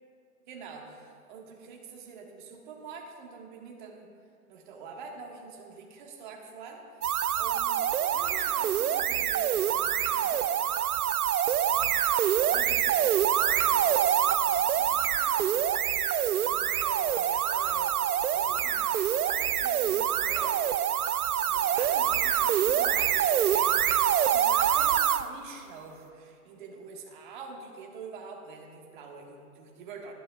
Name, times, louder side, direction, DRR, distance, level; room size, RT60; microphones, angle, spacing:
voice 1, 0.5-4.1 4.5-7.0 7.3-10.6 11.7-15.7 16.2-20.6 21.2-30.1, right 5 dB, 35° right, 1 dB, 1.5 m, -45 dB
sound 1, 7.0-25.3, right 10 dB, 75° right, 0.6 m, -26 dB
20.0 x 11.0 x 2.3 m, 2.5 s
hypercardioid pair, 145°, 45 cm